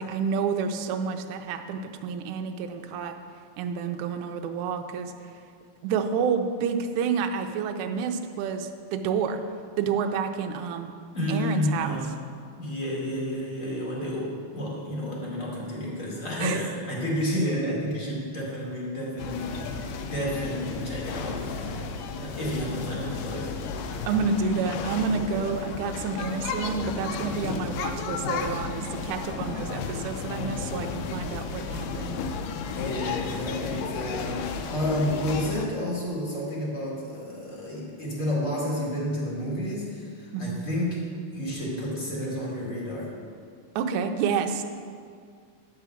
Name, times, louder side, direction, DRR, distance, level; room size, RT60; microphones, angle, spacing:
voice 1, 0.0-3.1 3.6-5.4 5.8-9.4 9.8-10.9 11.3-12.0 16.4-16.6 24.1-32.2 40.3-40.6 43.8-44.6, right 6 dB, 80° right, 5 dB, 1.7 m, -29 dB
voice 2, 11.1-12.1 12.6-19.6 20.1-23.5 32.7-41.0 41.3-43.2, equal, 30° left, -4 dB, 1.4 m, -30 dB
sound 1, 19.2-35.7, left 5 dB, 80° left, 2.1 m, -33 dB
10.5 x 4.7 x 7.1 m, 2.2 s
omnidirectional pair, 4.1 m